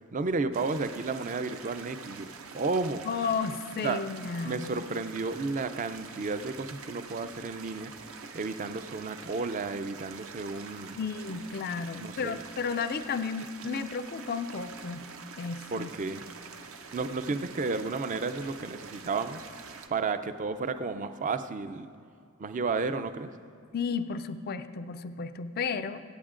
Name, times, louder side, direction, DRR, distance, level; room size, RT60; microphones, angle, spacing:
voice 1, 0.1-3.1 3.8-4.0 4.4-7.9 8.3-11.0 12.0-12.4 15.7-16.2 16.9-19.4 19.9-21.9 22.4-23.3, right 4 dB, 35° right, 11 dB, 0.4 m, -32 dB
sound 1, 0.5-19.9, right 5 dB, 70° right, 0.7 m, -46 dB
voice 2, 3.0-4.8 10.9-15.0 15.4-15.9 17.3-17.4 23.7-26.0, left 5 dB, 45° left, 11 dB, 0.4 m, -33 dB
24.5 x 8.7 x 2.5 m, 2.4 s
head